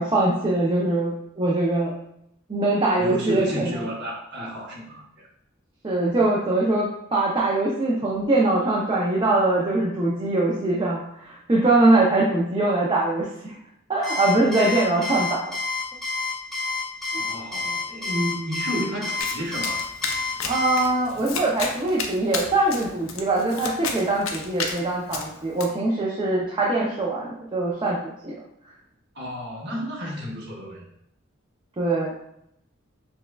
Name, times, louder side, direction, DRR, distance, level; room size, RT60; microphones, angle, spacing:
voice 1, 0.0-2.0 2.5-3.7 5.8-13.5 13.9-15.4 20.5-28.3 31.8-32.1, right 2 dB, 25° right, -4 dB, 0.5 m, -22 dB
voice 2, 3.0-5.3 17.1-19.9 21.1-21.3 29.1-30.9, equal, 60° right, -5 dB, 1.3 m, -32 dB
Alarm, 14.0-20.8, left 4 dB, ahead, 0.8 m, -28 dB
Domestic sounds home sounds, 19.2-25.6, left 5 dB, 80° left, 0.5 m, -33 dB
6.0 x 2.2 x 2.3 m, 0.76 s
head